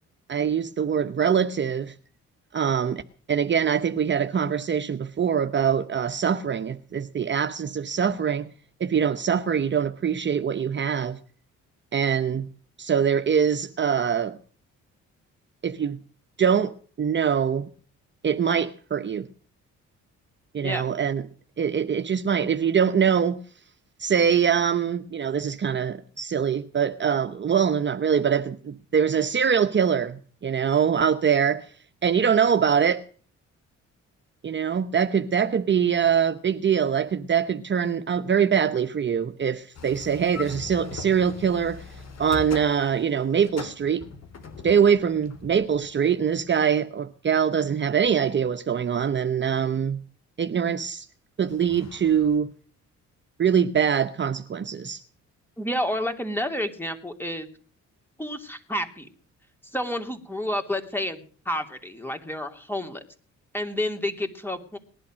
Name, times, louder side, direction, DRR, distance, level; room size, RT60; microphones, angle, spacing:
voice 1, 0.3-1.9 2.5-3.0 3.3-8.5 8.8-11.2 11.9-12.5 12.8-14.4 15.6-16.0 16.4-17.7 18.2-19.3 20.5-21.2 21.6-23.4 24.0-31.7 32.0-33.0 34.4-41.8 42.2-44.0 44.6-50.0 50.4-51.1 51.4-52.5 53.4-55.0, right 7 dB, 40° right, 0.9 m, -23 dB
sound 1, 39.7-46.4 51.5-52.4, left 5 dB, 60° left, 3.6 m, -41 dB
voice 2, 55.6-57.5 58.2-59.1 59.7-63.0 63.5-64.8, left 1 dB, 5° left, 3.0 m, -30 dB
19.0 x 11.5 x 6.3 m
cardioid pair, 90°, 30 cm